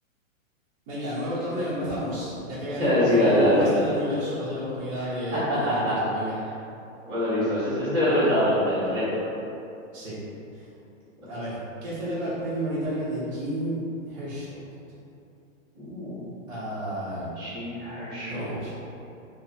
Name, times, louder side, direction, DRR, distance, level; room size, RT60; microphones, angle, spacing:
voice 1, 0.9-6.3 9.9-10.2 10.5-10.7 11.3-13.8 14.0-14.7 16.5-17.5 18.3-18.7, equal, 25° right, -12 dB, 1.1 m, -31 dB
voice 2, 2.7-3.7 5.6-6.0 7.0-9.1 11.2-11.3 15.7-16.2 17.4-18.6, left 1 dB, 5° right, -25 dB, 0.5 m, -24 dB
3.3 x 2.1 x 4.1 m, 2.7 s
hypercardioid pair, 170°, 39 cm